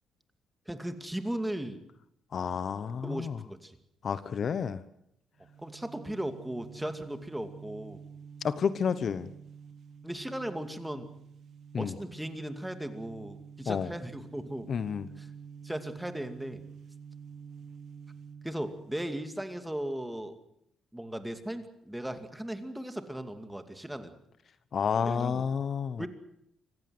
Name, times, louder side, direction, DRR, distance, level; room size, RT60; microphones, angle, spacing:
voice 1, 0.7-1.8 3.0-3.8 5.6-8.0 10.0-11.1 11.8-14.7 15.2-15.3 15.6-16.6 18.4-20.4 20.9-24.2 25.0-25.4 26.0-26.1, right 1 dB, 5° right, 8 dB, 2.5 m, -37 dB
voice 2, 2.3-3.4 4.0-4.8 8.4-9.3 11.7-11.9 13.7-13.9 14.7-15.1 24.7-26.1, left 6 dB, 50° left, 14 dB, 1.0 m, -30 dB
sound 1, 5.4-19.9, right 6 dB, 60° right, 2.1 m, -49 dB
25.5 x 15.5 x 7.9 m, 0.75 s
cardioid pair, 90°, 0 cm